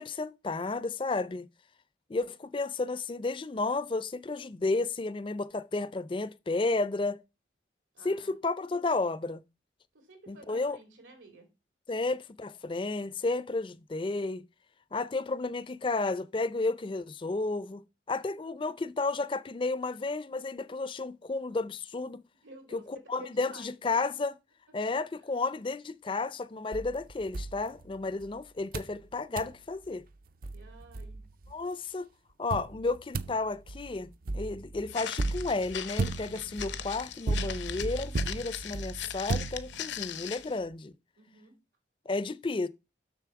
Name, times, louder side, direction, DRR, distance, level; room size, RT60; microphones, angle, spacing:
voice 1, 0.0-1.5 2.1-7.2 8.0-9.4 10.3-10.8 11.9-14.4 14.9-22.2 22.7-24.3 24.7-30.0 31.5-32.1 32.4-40.9 42.1-42.7, left 3 dB, 25° left, 0.4 m, -32 dB
voice 2, 7.9-8.4 9.9-11.5 22.4-24.0 30.5-31.2 41.2-41.5, right 2 dB, 90° right, 3.1 m, -52 dB
sound 1, 26.7-28.3 28.7-29.0 29.4-29.6 30.1-30.2 30.4-31.5 32.5-40.1, right 3 dB, 50° right, 0.4 m, -35 dB
Walk footsteps, 34.9-40.6, left 10 dB, 75° left, 0.7 m, -40 dB
6.9 x 6.5 x 4.7 m
head